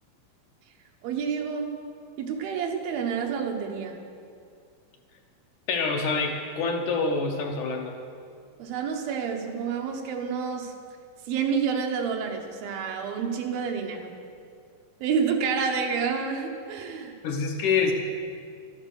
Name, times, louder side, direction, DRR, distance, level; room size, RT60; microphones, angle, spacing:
voice 1, 1.0-1.7 2.2-4.0 8.6-10.7 11.2-14.1 15.0-17.2, right 6 dB, 85° right, 3 dB, 3.0 m, -29 dB
voice 2, 5.7-8.0 17.2-17.9, left 4 dB, 70° left, 3 dB, 2.0 m, -26 dB
13.0 x 12.0 x 6.4 m, 2.3 s
omnidirectional pair, 4.1 m